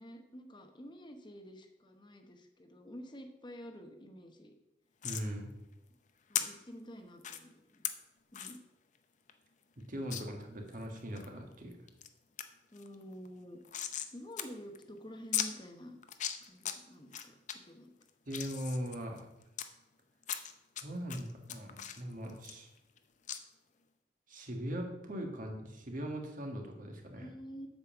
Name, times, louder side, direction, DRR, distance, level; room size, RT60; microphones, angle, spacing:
voice 1, 0.0-4.5 6.3-7.9 8.3-8.6 12.7-13.6 14.1-16.0 16.4-17.4 17.6-17.9 27.2-27.7, equal, 25° left, 5 dB, 1.0 m, -49 dB
sound 1, 5.0-5.3 6.3-6.4 7.2-7.4 7.8-7.9 8.3-8.6 9.0-9.1 9.3-9.4 10.1-10.2 10.7-11.3 11.7-12.1 12.4-12.5 12.8-14.1 14.4-14.5 14.7-14.8 15.3-15.5 16.0-16.7 17.1-17.5 18.0-19.7 20.2-20.8 21.1-23.0 23.3-23.4, left 10 dB, 45° left, 0.7 m, -37 dB
voice 2, 5.0-5.5 9.8-11.8 18.3-19.3 20.8-22.7 24.3-27.3, equal, 50° right, 2 dB, 1.6 m, -40 dB
8.0 x 5.5 x 7.1 m, 0.91 s
head